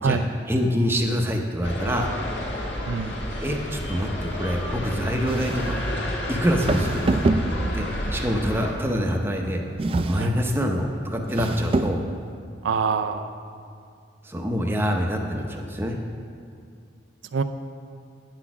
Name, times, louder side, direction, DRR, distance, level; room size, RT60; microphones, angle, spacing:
voice 1, 0.5-2.2 3.4-5.8 6.3-7.2 7.7-7.9 8.1-9.6 10.1-12.0 14.2-16.0, equal, 10° right, 2 dB, 0.7 m, -25 dB
sound 1, 1.6-8.7, equal, 65° left, 1.6 m, -30 dB
sound 2, 5.3-5.9 6.6-7.9 9.8-10.5 11.2-12.1, right 2 dB, 30° right, 0.3 m, -25 dB
voice 2, 12.6-13.3 17.3-17.4, right 5 dB, 85° right, 9 dB, 0.5 m, -24 dB
9.6 x 6.1 x 6.0 m, 2.3 s
head